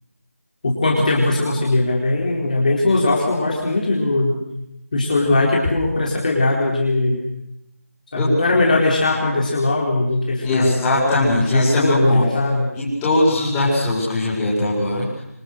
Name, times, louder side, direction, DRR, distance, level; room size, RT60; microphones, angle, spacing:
voice 1, 0.6-4.4 4.9-7.2 8.1-10.8 11.5-12.7, left 2 dB, 30° left, -2 dB, 4.5 m, -19 dB
voice 2, 10.4-12.2 12.7-15.2, left 1 dB, 10° left, -8 dB, 5.8 m, -20 dB
26.5 x 23.5 x 6.7 m, 0.83 s
figure-of-eight pair, 170°, 8 cm